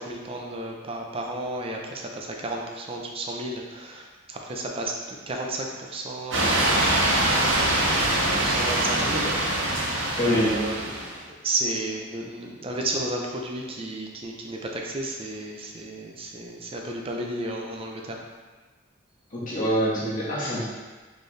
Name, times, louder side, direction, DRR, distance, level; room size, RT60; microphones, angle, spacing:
voice 1, 0.0-11.1 11.4-18.2, right 2 dB, 30° right, 0 dB, 0.5 m, -33 dB
sound 1, 6.3-11.2, right 1 dB, 75° right, 0.9 m, -24 dB
voice 2, 10.2-10.6 19.3-20.6, equal, 45° left, -8 dB, 1.3 m, -25 dB
4.4 x 3.3 x 3.2 m, 1.3 s
head